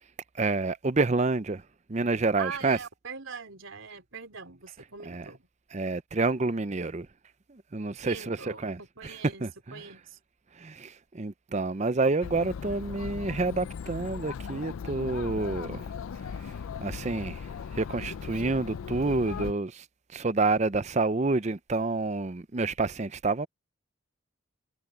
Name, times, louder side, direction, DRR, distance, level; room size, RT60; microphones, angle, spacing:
voice 1, 0.4-1.6 1.9-2.8 5.1-5.2 5.7-7.1 7.5-9.1 9.4-9.5 10.6-15.8 16.8-17.4 17.7-19.8 20.1-23.5, right 3 dB, 35° right, 0.6 m, -28 dB
voice 2, 2.4-5.5 8.0-9.5 9.7-10.2, right 5 dB, 75° right, 3.6 m, -42 dB
Chatter, 12.2-19.5, left 6 dB, 90° left, 0.4 m, -38 dB
head